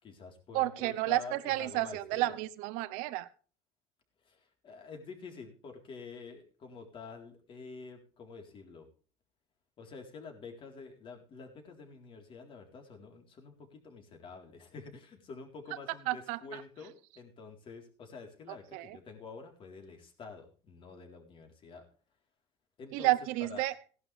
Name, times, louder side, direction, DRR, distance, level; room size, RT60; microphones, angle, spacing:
voice 1, 0.0-2.4 4.2-8.9 9.8-21.8 22.8-23.1 23.5-23.6, left 4 dB, 40° left, 3 dB, 4.0 m, -48 dB
voice 2, 0.5-3.3 16.1-16.6 18.7-19.0 22.9-23.7, right 17 dB, 80° right, 14 dB, 1.0 m, -31 dB
17.5 x 11.5 x 3.5 m, 0.38 s
cardioid pair, 120°, 13 cm